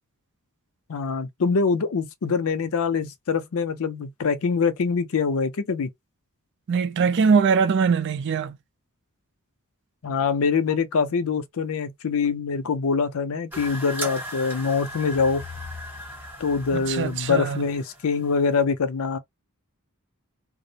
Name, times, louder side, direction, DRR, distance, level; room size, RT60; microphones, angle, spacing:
voice 1, 0.9-5.9 10.0-15.4 16.4-19.2, left 5 dB, 70° left, 0.5 m, -24 dB
voice 2, 6.7-8.6 16.7-17.6, right 5 dB, 55° right, 0.4 m, -22 dB
sound 1, 13.5-18.6, equal, 10° right, 1.0 m, -37 dB
2.4 x 2.0 x 2.7 m
head